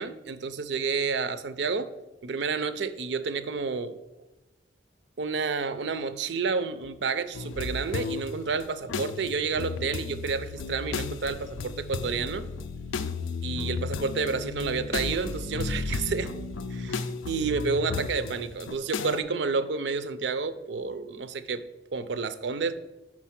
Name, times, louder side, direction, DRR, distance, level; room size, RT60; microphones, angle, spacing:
voice 1, 0.0-1.9 2.2-4.0 5.2-12.5 13.4-16.3 16.7-21.6 21.9-22.8, right 4 dB, 65° right, 12 dB, 0.5 m, -30 dB
sound 1, 7.3-8.3 8.6-19.2, left 4 dB, 85° left, 0.4 m, -34 dB
5.9 x 4.6 x 5.8 m, 1.0 s
head